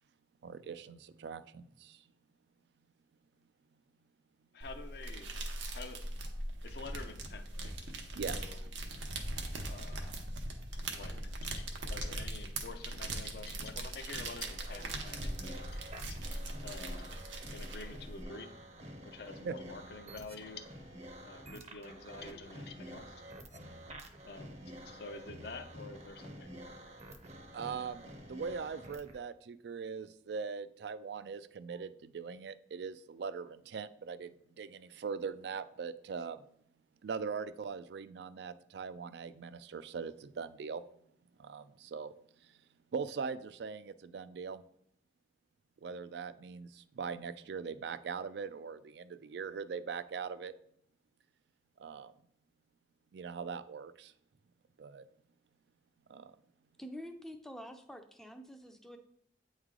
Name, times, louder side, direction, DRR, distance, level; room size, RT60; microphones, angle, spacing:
voice 1, 0.4-2.0 8.1-8.4 19.4-19.5 27.5-36.5 37.0-40.8 41.4-42.1 42.4-42.6 42.9-44.6 45.8-50.5 51.8-52.1 53.1-54.1 54.8-55.1 56.1-56.4, right 5 dB, 65° right, 14 dB, 0.3 m, -41 dB
voice 2, 4.5-5.3 5.7-6.0 6.6-7.9 8.3-8.6 9.6-10.3 10.9-15.8 16.1-17.2 17.5-18.5 19.0-23.2 24.2-27.0, left 4 dB, 55° left, 7 dB, 0.5 m, -48 dB
sound 1, 4.6-18.2, right 2 dB, 85° right, 0.9 m, -40 dB
sound 2, 14.4-29.2, right 1 dB, 35° right, 0.7 m, -49 dB
voice 3, 56.8-59.0, equal, ahead, 6 dB, 0.4 m, -47 dB
8.9 x 3.2 x 3.7 m, 0.73 s
head